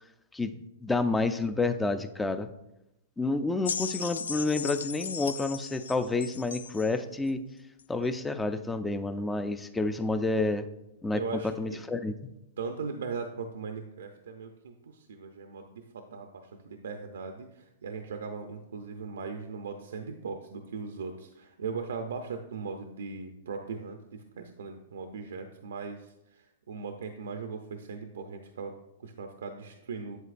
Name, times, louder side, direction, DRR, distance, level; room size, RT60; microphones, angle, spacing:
voice 1, 0.3-2.5 3.2-7.4 7.9-10.7 11.0-11.2 11.6-12.1, left 3 dB, 10° left, 10 dB, 0.4 m, -29 dB
sound 1, 3.6-6.9 7.8-7.9, left 6 dB, 90° left, 0.3 m, -37 dB
voice 2, 11.1-11.8 12.6-30.2, right 5 dB, 85° right, 5 dB, 0.6 m, -39 dB
8.0 x 7.8 x 2.5 m, 0.90 s
hypercardioid pair, 140°, 0 cm